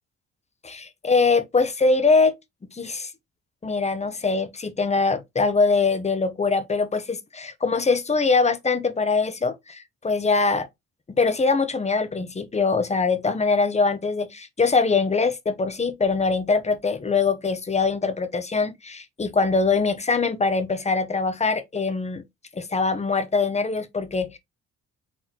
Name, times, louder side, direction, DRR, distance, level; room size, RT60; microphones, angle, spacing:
voice 1, 0.6-2.3 2.7-3.1 3.6-10.7 11.2-22.2 22.5-24.4, left 4 dB, 20° left, 0.8 m, -23 dB
4.1 x 3.8 x 2.9 m
cardioid pair, 90°, 30 cm